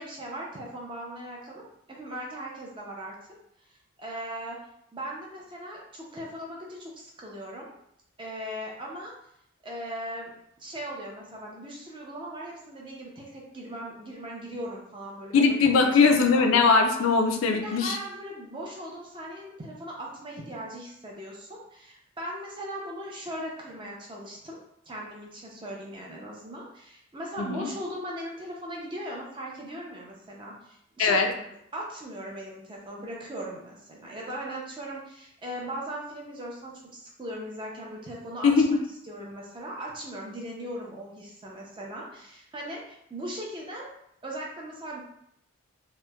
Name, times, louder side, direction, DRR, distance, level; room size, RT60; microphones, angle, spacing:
voice 1, 0.0-3.2 4.0-4.6 4.9-7.7 8.2-9.1 9.6-10.3 10.6-15.6 16.1-16.5 17.5-24.6 24.9-38.5 39.1-43.9 44.2-45.0, right 1 dB, 25° right, -2 dB, 0.4 m, -39 dB
voice 2, 15.3-18.0 27.4-27.7 31.0-31.3 38.4-38.8, left 4 dB, 75° left, 4 dB, 0.3 m, -21 dB
2.8 x 2.0 x 2.2 m, 0.74 s
head